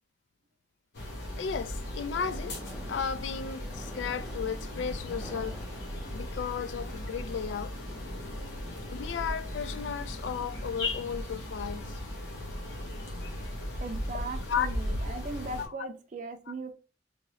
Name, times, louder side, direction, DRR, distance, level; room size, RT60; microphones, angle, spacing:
sound 1, 0.9-15.7, left 1 dB, 70° left, 1.1 m, -37 dB
voice 1, 1.4-2.5 2.9-5.5 6.1-7.7 8.9-12.0 14.5-14.7 15.0-15.2 15.6-15.9, left 7 dB, 90° left, 0.3 m, -34 dB
sound 2, 2.1-7.4, equal, 15° left, 1.0 m, -47 dB
voice 2, 13.8-16.7, right 3 dB, 45° right, 0.4 m, -39 dB
3.7 x 2.8 x 3.0 m
head